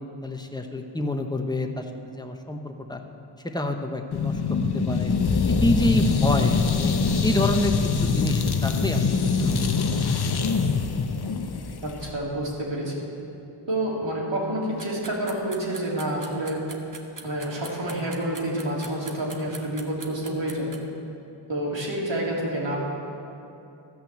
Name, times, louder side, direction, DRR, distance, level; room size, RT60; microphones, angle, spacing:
voice 1, 0.2-3.0 3.4-5.1 5.5-6.9 7.2-10.0, left 1 dB, 10° left, 4 dB, 1.0 m, -28 dB
sound 1, 4.1-12.1, left 5 dB, 55° left, 0.8 m, -24 dB
voice 2, 11.8-12.9 13.7-16.6 17.2-20.8 21.5-22.8, right 1 dB, 65° right, -4 dB, 2.9 m, -28 dB
sound 2, 14.8-20.8, right 4 dB, 40° right, 1.2 m, -41 dB
13.5 x 5.7 x 7.5 m, 2.8 s
cardioid pair, 45°, 48 cm